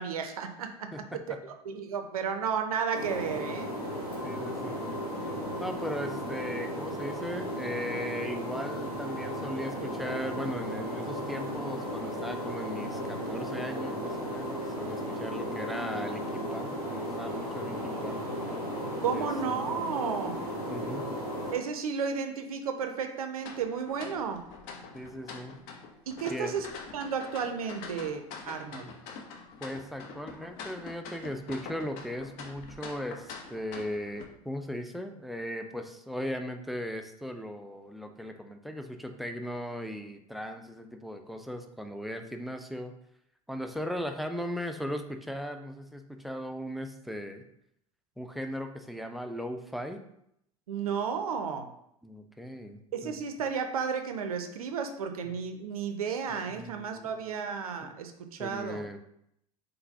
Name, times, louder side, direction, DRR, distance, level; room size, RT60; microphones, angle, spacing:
voice 1, 0.0-0.9 1.7-3.7 19.0-20.4 21.5-24.4 26.1-26.7 26.9-28.9 50.7-51.7 52.9-58.8, right 6 dB, 70° right, 7 dB, 0.5 m, -33 dB
voice 2, 0.9-1.4 4.2-5.0 5.6-18.2 19.1-19.3 20.7-21.1 24.9-25.6 26.3-26.6 28.7-28.9 29.6-42.9 43.5-47.4 48.2-50.0 52.0-53.2 55.2-55.3 56.5-57.1 58.4-59.0, equal, ahead, 5 dB, 0.4 m, -38 dB
sound 1, 2.9-21.5, equal, 80° left, 1.2 m, -35 dB
sound 2, 23.4-34.2, left 5 dB, 50° left, 0.7 m, -45 dB
3.9 x 3.8 x 2.7 m, 0.75 s
figure-of-eight pair, 75°, 19 cm